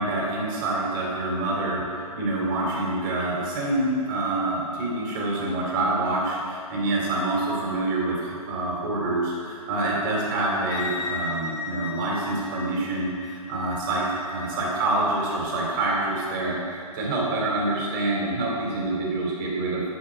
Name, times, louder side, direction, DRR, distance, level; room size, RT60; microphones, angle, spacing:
voice 1, 0.0-19.8, right 2 dB, 30° right, -3 dB, 2.8 m, -26 dB
Wind instrument woodwind instrument, 10.7-14.5, left 5 dB, 20° left, 0.7 m, -36 dB
10.5 x 7.9 x 5.7 m, 2.4 s
figure-of-eight pair, 135°, 19 cm